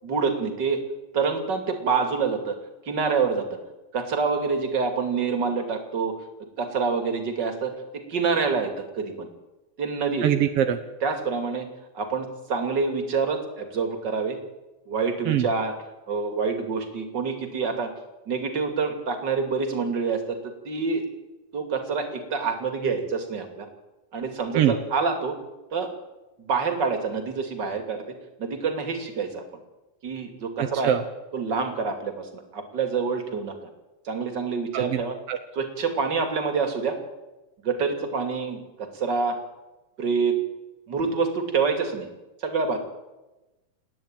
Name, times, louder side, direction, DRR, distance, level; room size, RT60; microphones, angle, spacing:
voice 1, 0.0-0.8 1.1-2.6 2.8-3.6 3.9-6.1 6.6-9.3 9.8-10.3 11.0-11.7 11.9-14.4 14.9-15.7 16.1-17.9 18.3-21.0 21.5-23.7 24.1-25.4 25.7-25.9 26.4-29.4 30.0-31.0 31.3-33.6 34.0-35.2 35.5-37.0 37.6-39.4 40.0-40.4 40.9-42.1 42.4-42.8, right 5 dB, 35° right, 6 dB, 2.8 m, -27 dB
voice 2, 10.2-10.8 15.2-15.5 24.5-24.8 30.6-31.0 34.7-35.0 35.3-35.4, right 10 dB, 70° right, 8 dB, 1.4 m, -23 dB
29.0 x 10.0 x 9.0 m, 1.1 s
omnidirectional pair, 3.9 m